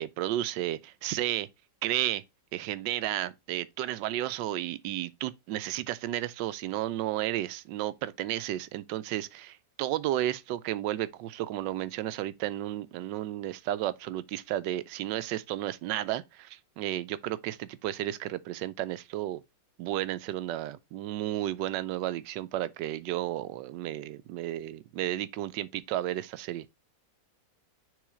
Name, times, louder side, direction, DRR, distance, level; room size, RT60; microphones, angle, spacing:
voice 1, 0.0-1.5 1.8-2.2 2.5-19.4 19.8-26.7, right 13 dB, 90° right, 1.2 m, -33 dB
6.3 x 3.8 x 4.8 m
omnidirectional pair, 1.9 m